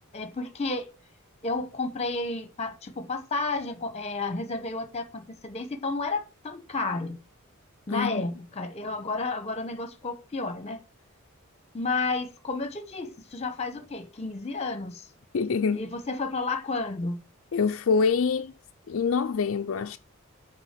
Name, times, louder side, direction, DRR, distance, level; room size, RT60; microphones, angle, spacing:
voice 1, 0.1-0.9 1.4-7.2 7.9-10.8 11.7-15.1 15.7-17.2, left 3 dB, 30° left, 1.0 m, -31 dB
voice 2, 7.9-8.2 15.3-15.8 17.5-18.5 18.9-20.0, left 5 dB, 65° left, 0.4 m, -25 dB
6.2 x 5.0 x 6.7 m
head